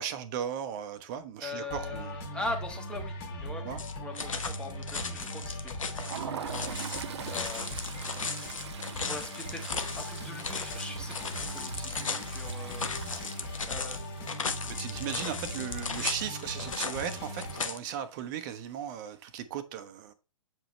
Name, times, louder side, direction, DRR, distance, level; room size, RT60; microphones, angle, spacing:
voice 1, 0.0-2.1 3.6-3.8 14.7-20.1, right 9 dB, 35° right, 0.9 m, -37 dB
voice 2, 1.4-3.6 4.0-5.7 6.1-6.8 7.3-8.0 9.1-13.1 13.7-14.0, left 2 dB, 5° left, 1.3 m, -41 dB
sound 1, 1.7-17.7, equal, 45° left, 3.1 m, -39 dB
sound 2, 3.8-17.8, left 5 dB, 70° left, 1.0 m, -37 dB
Toilet flush, 5.7-16.4 16.7-17.0 17.3-17.4 18.4-18.9, right 10 dB, 55° right, 0.5 m, -44 dB
7.8 x 5.0 x 3.1 m
figure-of-eight pair, 115°, 17 cm